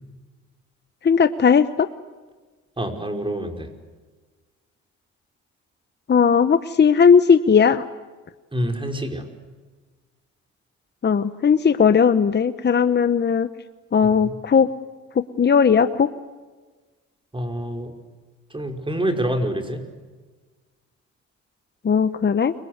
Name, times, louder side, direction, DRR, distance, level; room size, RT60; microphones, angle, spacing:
voice 1, 1.0-1.9 6.1-7.8 11.0-13.5 13.9-14.7 15.1-16.1 21.8-22.5, left 6 dB, 35° left, 11 dB, 1.1 m, -17 dB
voice 2, 2.8-3.7 8.5-9.3 14.0-14.3 17.3-18.0 18.5-19.8, right 1 dB, 15° right, 5 dB, 5.2 m, -27 dB
30.0 x 24.0 x 8.1 m, 1.3 s
cardioid pair, 90°, 30 cm